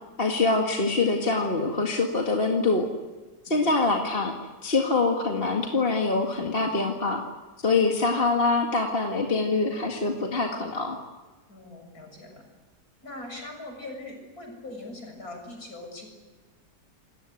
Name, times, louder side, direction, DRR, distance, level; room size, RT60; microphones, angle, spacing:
voice 1, 0.2-2.9 3.4-4.3 4.6-7.2 7.6-11.0, left 3 dB, 35° left, 1 dB, 2.2 m, -24 dB
voice 2, 3.5-3.9 11.5-12.4 13.0-16.1, left 2 dB, 60° left, 2 dB, 7.2 m, -41 dB
27.5 x 19.0 x 9.5 m, 1.2 s
omnidirectional pair, 1.8 m